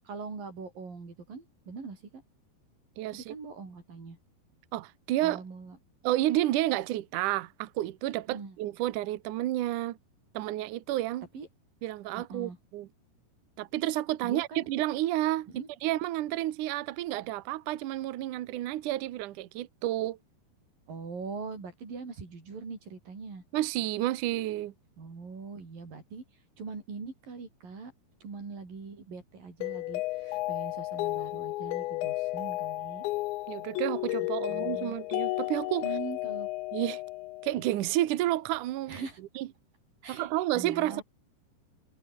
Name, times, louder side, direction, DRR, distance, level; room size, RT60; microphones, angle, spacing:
voice 1, 0.1-2.2 3.1-4.2 5.2-5.8 8.3-8.6 11.3-11.5 12.2-12.6 14.2-14.7 15.5-15.7 20.9-23.4 25.0-26.2 26.6-27.9 28.2-33.0 34.5-35.0 35.8-36.5 38.9-39.2 40.0-41.0, right 4 dB, 50° right, 8.1 m, -42 dB
voice 2, 3.0-3.3 4.7-5.4 6.0-10.0 10.3-11.3 11.8-12.9 13.6-15.5 15.8-20.2 23.5-24.7 33.5-35.8 36.7-37.0 37.4-39.0 39.4-39.5 40.1-41.0, right 15 dB, 75° right, 1.8 m, -30 dB
Mallet percussion, 29.6-37.8, left 19 dB, 90° left, 3.0 m, -33 dB
omnidirectional pair, 5.1 m